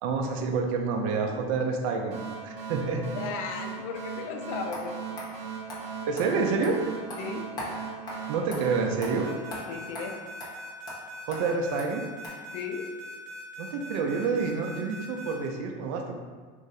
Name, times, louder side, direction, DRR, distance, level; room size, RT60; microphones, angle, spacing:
voice 1, 0.0-3.0 6.1-6.8 8.3-9.3 11.3-12.0 13.6-16.2, right 4 dB, 75° right, 2 dB, 0.5 m, -28 dB
sound 1, 2.1-10.4, right 6 dB, 55° right, 0.9 m, -39 dB
voice 2, 3.1-5.3 7.2-7.5 9.7-10.2 12.5-12.9, left 5 dB, 60° left, 5 dB, 0.4 m, -36 dB
sound 2, 4.7-4.8 5.2-5.3 5.7-5.8 6.2-6.3 6.6-6.7 7.1-7.2 7.6-7.7 8.1-8.2 8.5-8.6 9.0-9.1 9.5-9.6 9.9-10.1 10.4-10.5 10.9-11.0 11.3-11.4 11.8-11.9 12.2-12.3, left 1 dB, 20° left, 0.8 m, -38 dB
sound 3, 9.2-15.5, equal, 5° right, 1.0 m, -42 dB
2.6 x 2.5 x 3.9 m, 1.5 s
cardioid pair, 160°, 18 cm